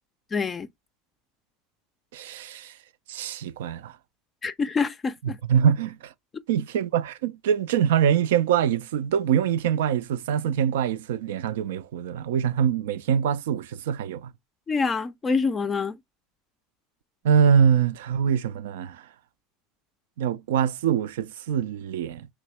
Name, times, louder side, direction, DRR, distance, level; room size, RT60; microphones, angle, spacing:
voice 1, 0.3-0.7 4.4-5.4 14.7-16.0, left 4 dB, 25° left, 0.4 m, -26 dB
voice 2, 2.1-2.7 3.1-3.9 5.2-6.1 6.5-14.3 17.2-19.0 20.2-22.3, right 8 dB, 85° right, 0.3 m, -24 dB
3.0 x 2.7 x 3.1 m
supercardioid pair, 105°, 0 cm